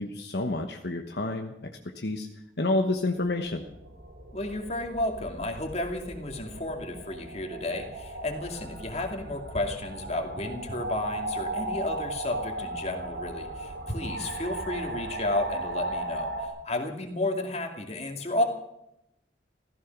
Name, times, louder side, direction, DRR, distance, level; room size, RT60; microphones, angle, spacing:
voice 1, 0.0-1.5 1.9-2.3 2.6-3.6, left 2 dB, 65° left, 4 dB, 1.2 m, -29 dB
sound 1, 3.3-16.5, right 2 dB, 80° right, 3.6 m, -37 dB
voice 2, 4.3-18.4, left 2 dB, 35° left, 4 dB, 2.5 m, -32 dB
15.5 x 15.0 x 6.0 m, 0.84 s
head